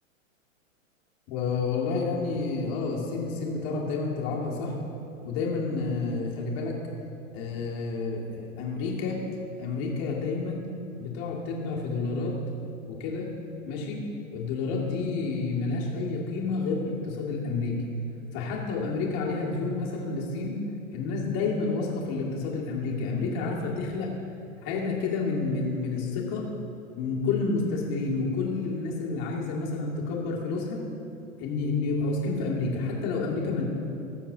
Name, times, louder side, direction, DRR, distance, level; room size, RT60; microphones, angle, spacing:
voice 1, 1.3-4.8 5.2-6.8 7.3-9.2 9.6-10.7 11.0-12.4 12.9-13.3 13.7-17.8 18.3-20.6 20.9-24.1 24.6-26.5 26.9-30.8 31.4-33.7, left 4 dB, 40° left, -3 dB, 2.2 m, -29 dB
20.0 x 7.2 x 2.8 m, 2.8 s
hypercardioid pair, 125°, 40 cm